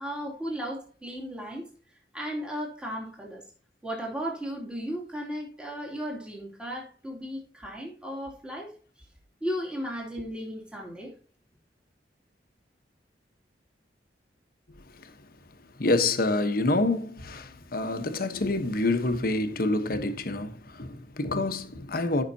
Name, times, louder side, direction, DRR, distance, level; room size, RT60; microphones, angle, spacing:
voice 1, 0.0-1.6 2.1-3.4 3.8-8.7 9.4-11.1, equal, 5° right, 2.6 m, -35 dB
voice 2, 15.8-22.2, left 2 dB, 55° left, 1.1 m, -27 dB
14.5 x 5.9 x 2.8 m
head